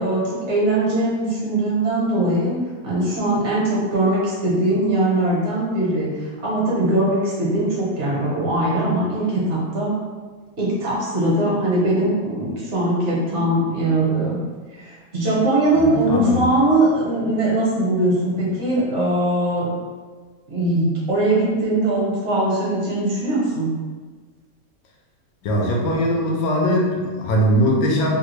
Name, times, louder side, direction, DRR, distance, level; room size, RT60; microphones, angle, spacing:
voice 1, 0.0-2.5 2.8-6.1 6.4-9.9 10.6-14.4 14.7-19.7 20.5-23.7, right 1 dB, 50° right, -6 dB, 1.1 m, -21 dB
voice 2, 15.8-16.5 25.4-28.1, equal, 70° left, -1 dB, 1.0 m, -20 dB
3.3 x 2.3 x 3.1 m, 1.5 s
omnidirectional pair, 1.9 m